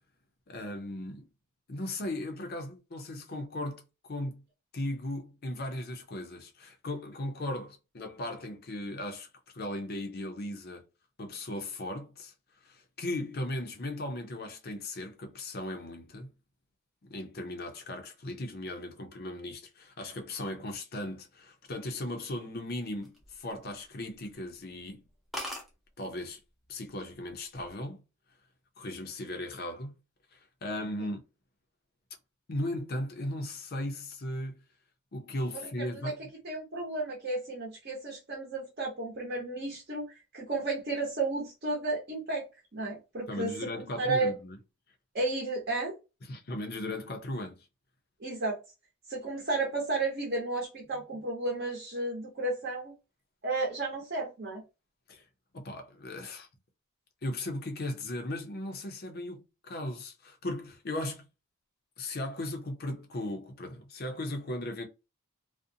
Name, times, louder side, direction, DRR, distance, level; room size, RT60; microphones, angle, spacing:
voice 1, 0.5-1.3 1.7-4.4 4.7-9.3 9.5-10.8 11.2-12.3 12.6-16.3 17.0-25.0 26.0-26.4 26.7-28.0 28.8-30.0 30.3-31.2 32.5-34.6 35.1-36.2 43.3-44.6 46.3-47.6 55.1-55.2 55.5-56.5 57.2-61.2 62.0-64.9, left 1 dB, 45° left, 0.6 m, -37 dB
pin badge falling, 22.8-23.9 24.2-24.4 24.8-24.9 25.1-25.2 25.3-25.7 26.6-26.9 27.3-27.7, left 1 dB, ahead, 0.5 m, -40 dB
voice 2, 35.8-36.1 36.4-42.4 42.7-44.3 45.1-45.9 48.2-48.6 49.1-52.9 53.4-54.6, right 2 dB, 45° right, 0.8 m, -33 dB
2.5 x 2.1 x 2.6 m
head